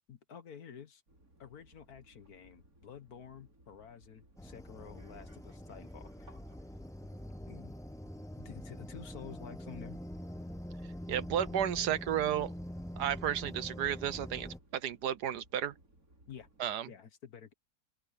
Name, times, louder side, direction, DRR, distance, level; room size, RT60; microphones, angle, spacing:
voice 1, 0.1-1.0 1.4-6.4 7.5-7.8 8.3-10.0 16.3-16.5 16.9-17.5, left 8 dB, 65° left, 1.7 m, -50 dB
sound 1, 1.1-16.7, right 1 dB, 55° right, 5.9 m, -63 dB
sound 2, 4.4-14.6, equal, 5° left, 0.6 m, -44 dB
voice 2, 11.1-12.5 13.0-15.7 16.6-16.9, right 10 dB, 75° right, 1.4 m, -33 dB
open air
omnidirectional pair, 1.8 m